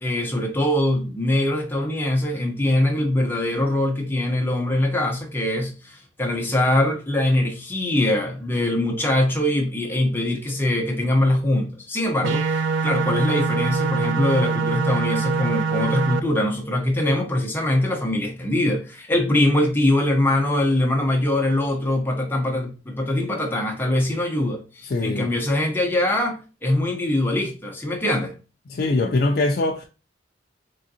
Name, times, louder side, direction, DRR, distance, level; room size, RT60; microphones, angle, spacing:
voice 1, 0.0-28.3, left 1 dB, 10° left, 0.7 m, -22 dB
sound 1, 12.2-16.2, right 4 dB, 90° right, 0.4 m, -23 dB
voice 2, 24.8-25.3 28.7-29.8, left 2 dB, 55° left, 0.4 m, -22 dB
3.8 x 3.5 x 2.7 m
head